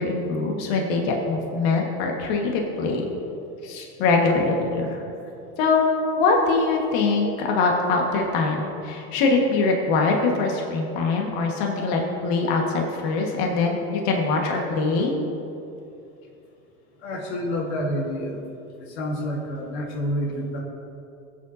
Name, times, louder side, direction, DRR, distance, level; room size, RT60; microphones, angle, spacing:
voice 1, 0.0-3.1 3.6-5.0 5.6-5.8 6.2-15.2, left 3 dB, 75° left, 0 dB, 1.7 m, -23 dB
voice 2, 17.0-18.4 18.8-20.6, equal, 90° left, -1 dB, 1.7 m, -28 dB
17.5 x 8.4 x 2.8 m, 2.7 s
supercardioid pair, 100°, 32 cm